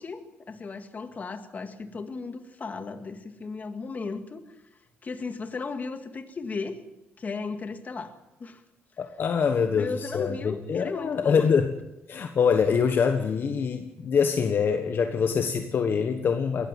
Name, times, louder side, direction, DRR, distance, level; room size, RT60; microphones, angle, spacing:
voice 1, 0.0-4.4 5.0-6.8 7.2-8.1 8.4-8.6 9.6-11.5, left 4 dB, 35° left, 8 dB, 2.1 m, -35 dB
voice 2, 9.0-11.7 12.1-16.7, left 6 dB, 50° left, 7 dB, 1.4 m, -24 dB
20.0 x 14.0 x 9.3 m, 0.95 s
cardioid pair, 100°, 5 cm